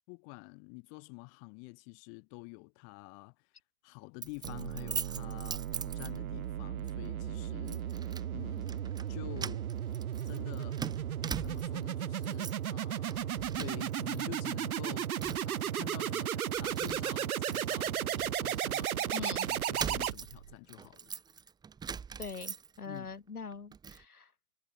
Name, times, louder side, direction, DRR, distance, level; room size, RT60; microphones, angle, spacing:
voice 1, 0.1-3.5 3.8-8.0 8.3-9.7 10.2-10.9 11.4-15.2 15.4-21.1 22.8-23.1, left 40 dB or more, 35° left, 2.0 m, -48 dB
Keys jangling, 4.2-6.5 6.9-7.1 7.7-8.3 8.6-9.1 9.4-11.8 12.2-12.7 13.0-14.2 14.5-15.6 16.1-16.2 16.5-18.9 19.4-23.0 23.4-24.0, right 6 dB, 10° right, 0.8 m, -42 dB
sound 1, 4.4-20.5, right 10 dB, 75° right, 0.7 m, -35 dB
voice 2, 19.1-19.5 22.2-24.3, left 5 dB, 80° left, 3.6 m, -42 dB
figure-of-eight pair, 100°, 44 cm